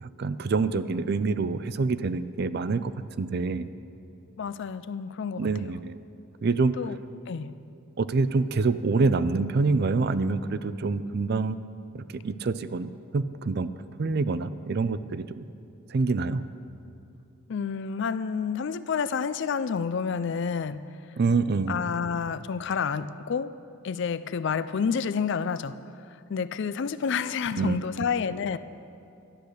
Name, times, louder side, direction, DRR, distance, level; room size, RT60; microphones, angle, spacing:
voice 1, 0.0-3.7 5.4-6.0 6.4-6.7 8.0-11.6 11.9-13.7 14.0-15.4 15.9-16.5 21.2-21.8 27.6-27.8, right 4 dB, 50° right, 14 dB, 0.4 m, -26 dB
voice 2, 4.4-5.5 6.8-7.0 7.3-7.5 17.5-20.8 21.7-23.5 23.8-25.8 26.3-28.6, left 6 dB, 55° left, 14 dB, 0.4 m, -29 dB
13.0 x 10.0 x 6.5 m, 2.6 s
head